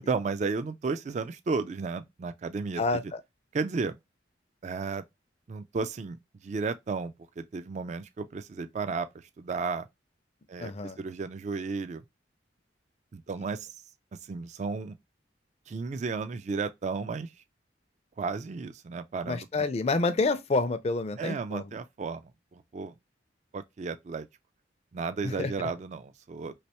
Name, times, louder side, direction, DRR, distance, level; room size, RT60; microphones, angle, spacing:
voice 1, 0.0-2.8 3.5-4.0 4.6-5.0 5.5-6.2 6.4-9.9 10.5-10.7 11.0-12.0 13.1-13.7 14.1-15.0 15.7-17.3 18.2-19.5 21.2-22.9 23.5-24.3 24.9-26.5, right 4 dB, 40° right, 0.3 m, -33 dB
voice 2, 2.8-3.2 10.6-11.0 19.3-21.6 25.2-25.7, left 3 dB, 35° left, 0.4 m, -28 dB
3.2 x 3.0 x 2.9 m
head